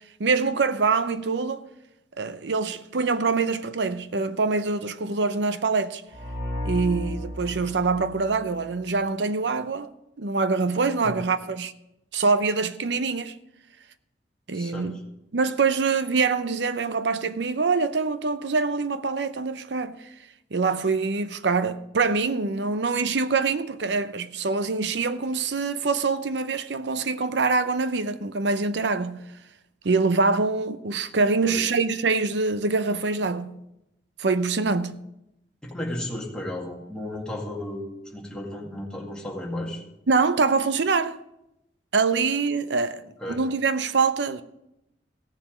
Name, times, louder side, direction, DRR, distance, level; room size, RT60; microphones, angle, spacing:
voice 1, 0.2-1.6 2.2-6.0 6.6-9.9 10.2-11.7 12.1-13.4 14.5-15.0 15.3-20.1 20.5-29.2 29.8-33.6 34.2-35.0 40.1-41.2 41.9-44.4, right 4 dB, 70° right, 0.6 m, -24 dB
sound 1, 6.1-8.9, left 1 dB, 45° right, 2.3 m, -33 dB
voice 2, 14.5-15.0 31.4-31.7 35.6-39.8 43.2-43.4, left 1 dB, 5° left, 2.1 m, -34 dB
15.5 x 7.2 x 5.1 m
head